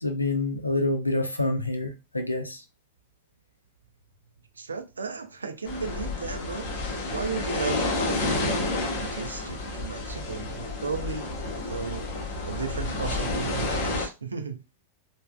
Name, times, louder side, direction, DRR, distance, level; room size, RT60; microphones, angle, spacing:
voice 1, 0.0-2.6, left 2 dB, 85° left, 0.4 m, -27 dB
voice 2, 4.6-6.7 7.1-12.1 12.4-14.6, right 5 dB, 75° right, 0.3 m, -35 dB
sound 1, 5.7-14.1, left 2 dB, 50° left, 0.7 m, -30 dB
3.3 x 2.0 x 2.2 m
figure-of-eight pair, 90°, 0 cm